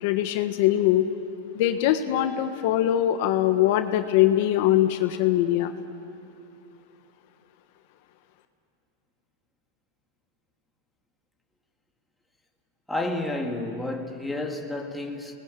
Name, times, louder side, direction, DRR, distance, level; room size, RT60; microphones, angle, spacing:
voice 1, 0.0-1.0 1.5-5.7, left 13 dB, 55° left, 1.3 m, -22 dB
voice 2, 12.9-15.4, left 2 dB, 5° left, 2.0 m, -30 dB
30.0 x 20.0 x 9.1 m
supercardioid pair, 145°, 0 cm